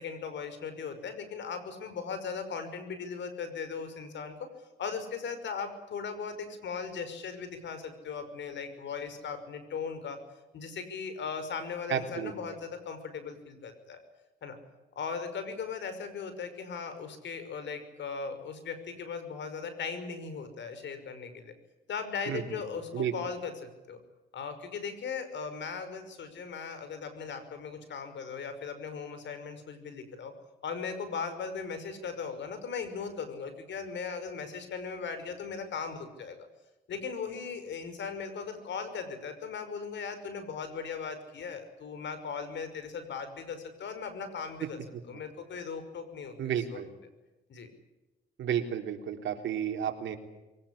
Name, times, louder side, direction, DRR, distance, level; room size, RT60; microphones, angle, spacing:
voice 1, 0.0-4.5 4.8-10.2 10.5-14.0 14.4-14.6 15.0-21.5 21.9-24.0 24.3-30.3 30.6-36.4 36.9-44.8 45.1-46.6 47.5-47.7, left 5 dB, 65° left, 10 dB, 5.6 m, -38 dB
voice 2, 11.9-12.3 22.3-22.6 22.9-23.1 44.6-44.7 46.4-46.9 48.4-50.2, right 9 dB, 75° right, 5 dB, 3.5 m, -32 dB
23.0 x 18.5 x 10.0 m, 1.1 s
cardioid pair, 90°, 20 cm